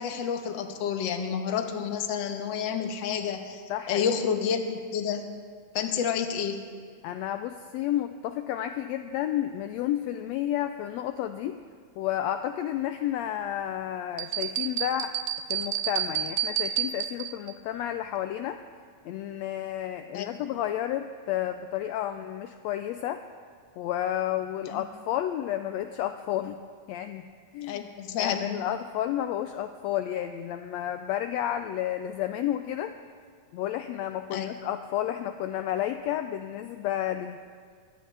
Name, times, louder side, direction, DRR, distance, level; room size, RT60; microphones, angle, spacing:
voice 1, 0.0-3.6 3.9-5.3 5.7-6.7 20.1-20.4 24.7-24.8 27.6-28.5 34.3-34.5, left 7 dB, 55° left, 5 dB, 1.4 m, -29 dB
voice 2, 3.7-4.1 7.0-11.6 12.0-15.1 15.5-18.6 19.0-23.2 23.8-26.6 26.9-27.3 27.5-27.8 28.2-32.9 33.5-37.4, left 11 dB, 80° left, 8 dB, 1.6 m, -31 dB
sound 1, 14.2-17.5, right 11 dB, 85° right, 1.3 m, -30 dB
23.0 x 17.0 x 3.4 m, 2.1 s
omnidirectional pair, 3.4 m